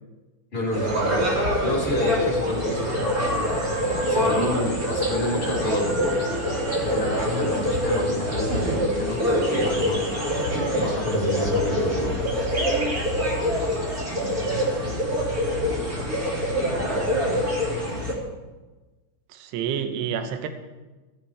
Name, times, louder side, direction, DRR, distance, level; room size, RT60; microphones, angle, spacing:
voice 1, 0.5-1.3 1.6-6.4 6.8-10.0 10.8-12.2, equal, 15° left, -4 dB, 3.8 m, -29 dB
sound 1, 0.7-18.1, equal, 25° right, 2.2 m, -25 dB
voice 2, 19.3-20.5, right 8 dB, 75° right, 7 dB, 2.9 m, -28 dB
17.5 x 14.0 x 3.5 m, 1.2 s
omnidirectional pair, 5.3 m